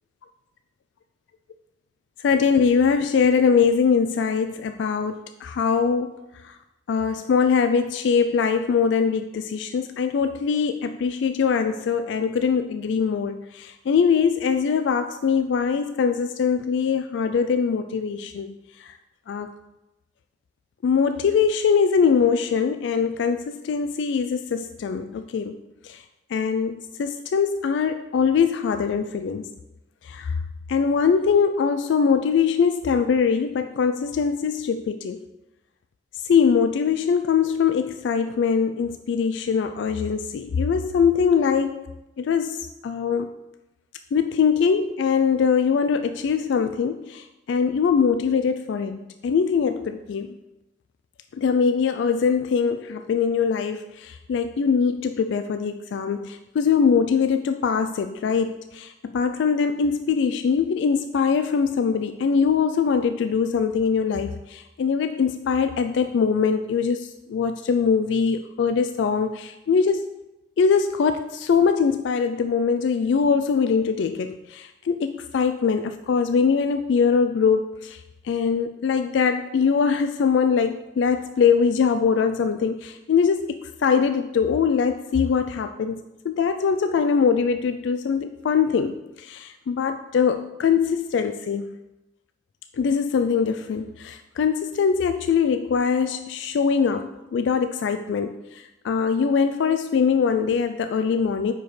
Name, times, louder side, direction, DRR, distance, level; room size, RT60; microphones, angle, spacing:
voice 1, 2.2-6.2 6.4-6.6 6.9-19.0 19.3-19.5 20.8-25.6 25.8-26.0 26.3-29.5 30.0-30.4 30.7-35.2 36.2-41.8 42.2-43.3 44.1-50.4 51.3-70.1 70.6-86.0 86.2-91.7 92.8-101.5, left 6 dB, 75° left, 9 dB, 0.3 m, -22 dB
9.0 x 5.0 x 3.2 m, 0.97 s
head